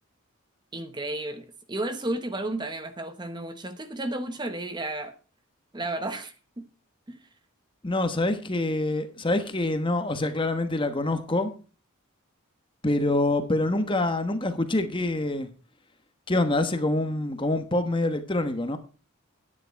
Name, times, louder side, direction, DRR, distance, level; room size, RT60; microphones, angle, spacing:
voice 1, 0.7-5.1 5.7-6.6 7.1-7.2, right 2 dB, 20° right, 0.9 m, -33 dB
voice 2, 7.8-11.5 12.8-15.5 16.3-18.8, left 2 dB, 25° left, 1.2 m, -26 dB
10.5 x 9.9 x 4.6 m
head